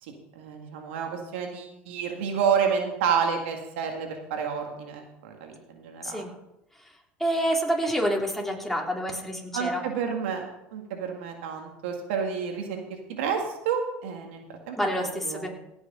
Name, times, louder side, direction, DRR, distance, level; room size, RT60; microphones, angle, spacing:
voice 1, 0.0-6.2 9.5-12.8 13.1-15.5, right 7 dB, 85° right, 3 dB, 2.0 m, -30 dB
voice 2, 7.2-9.8 14.8-15.5, equal, 5° left, 0 dB, 3.2 m, -27 dB
17.0 x 6.4 x 5.5 m, 0.84 s
supercardioid pair, 85°, 6 cm